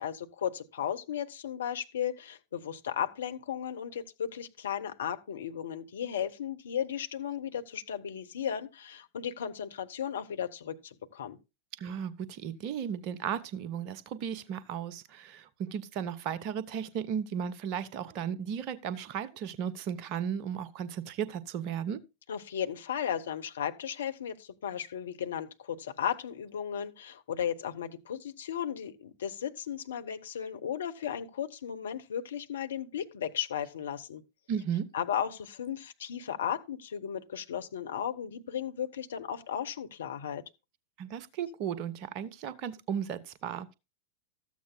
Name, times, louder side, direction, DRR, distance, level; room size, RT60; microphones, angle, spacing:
voice 1, 0.0-11.4 22.3-34.2 34.9-40.4, left 9 dB, 65° left, 1.0 m, -35 dB
voice 2, 11.8-22.0 34.5-34.9 41.0-43.7, right 8 dB, 40° right, 0.9 m, -35 dB
13.5 x 8.3 x 2.3 m
figure-of-eight pair, 90°, 0 cm